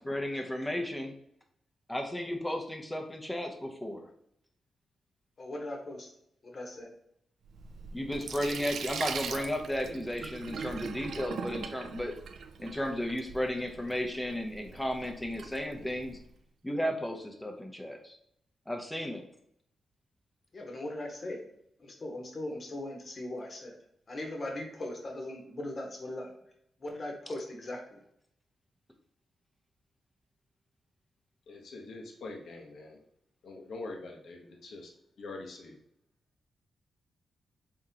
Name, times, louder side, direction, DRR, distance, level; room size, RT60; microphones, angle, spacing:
voice 1, 0.0-1.1 1.9-4.1 7.9-12.1 12.6-16.2 16.6-18.2 18.7-19.2, equal, 10° left, 3 dB, 0.8 m, -34 dB
voice 2, 5.4-6.1 6.4-6.9 20.5-21.4 21.8-23.7 24.1-26.3 26.8-28.0, left 1 dB, 45° left, 1 dB, 1.2 m, -39 dB
Sink (filling or washing), 7.4-16.2, right 6 dB, 75° right, 0.4 m, -42 dB
voice 3, 31.5-33.0 33.4-34.9 35.2-35.8, left 3 dB, 70° left, 1 dB, 1.0 m, -44 dB
3.7 x 3.5 x 2.8 m, 0.74 s
cardioid pair, 75°, 0 cm